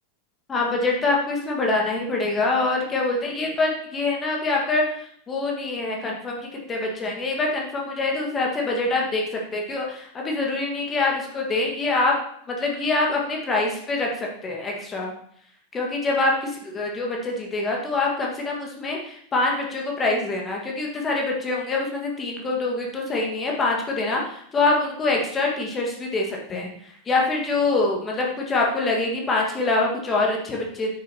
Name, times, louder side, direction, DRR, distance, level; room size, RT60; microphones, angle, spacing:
voice 1, 0.5-4.8 5.3-6.4 6.7-9.2 9.5-12.1 12.5-14.1 14.4-15.1 15.7-26.7 27.1-30.9, left 3 dB, 20° left, -1 dB, 1.7 m, -25 dB
8.6 x 6.5 x 2.9 m, 0.65 s
figure-of-eight pair, 90°, 0 cm